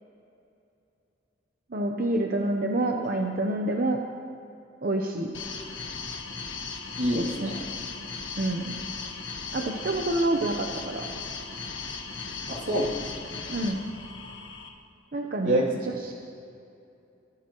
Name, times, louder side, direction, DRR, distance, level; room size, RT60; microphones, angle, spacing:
voice 1, 1.7-4.0 4.8-5.3 7.1-7.5 8.4-8.8 9.5-11.1 13.5-13.9 15.1-16.1, right 1 dB, 50° right, 2 dB, 0.8 m, -28 dB
sound 1, 5.3-14.7, left 4 dB, 70° left, 1.4 m, -37 dB
voice 2, 7.0-7.6 12.4-13.1 15.4-15.7, right 1 dB, 80° right, -4 dB, 2.8 m, -26 dB
23.0 x 13.5 x 3.0 m, 2.7 s
head